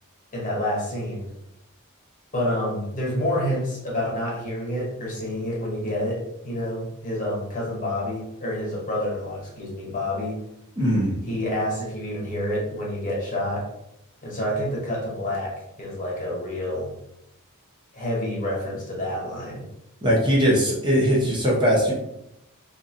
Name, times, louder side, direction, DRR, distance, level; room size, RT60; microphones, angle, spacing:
voice 1, 0.3-1.3 2.3-10.4 11.3-13.7 14.2-16.9 17.9-19.6, left 1 dB, 35° left, -4 dB, 0.9 m, -28 dB
voice 2, 10.8-11.2 20.0-21.9, equal, 20° right, -4 dB, 0.7 m, -20 dB
2.8 x 2.5 x 2.5 m, 0.83 s
head